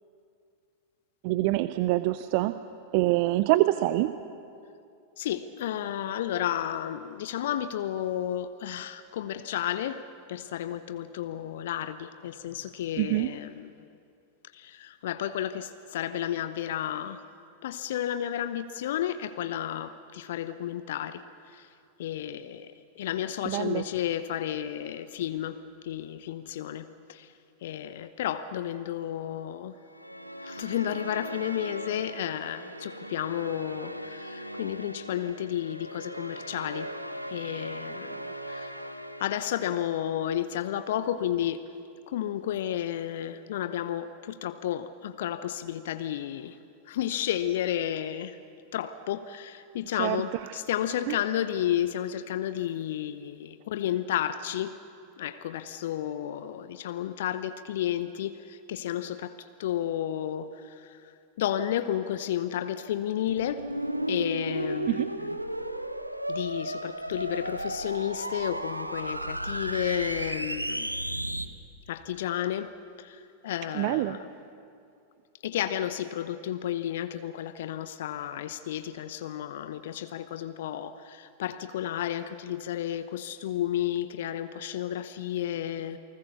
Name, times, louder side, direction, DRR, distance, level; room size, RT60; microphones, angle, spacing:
voice 1, 1.2-2.6 2.9-4.1 13.0-13.3 23.5-23.8 50.0-50.2 51.1-51.2 64.9-65.1 73.7-74.2, right 18 dB, 45° right, 13 dB, 0.6 m, -25 dB
voice 2, 5.2-13.7 14.5-17.2 17.6-21.7 22.0-27.3 27.6-29.8 30.4-36.9 37.3-38.8 39.2-41.7 42.1-46.6 46.9-48.4 48.7-54.8 55.2-63.6 64.1-65.4 66.3-71.0 71.9-72.7 73.0-74.3 75.4-86.0, left 11 dB, 55° left, 12 dB, 0.8 m, -32 dB
sound 1, 29.9-40.3, equal, 90° left, 1.0 m, -40 dB
sound 2, 63.3-71.5, right 1 dB, 85° right, 0.9 m, -33 dB
28.5 x 20.5 x 6.9 m, 2.5 s
figure-of-eight pair, 90°, 0 cm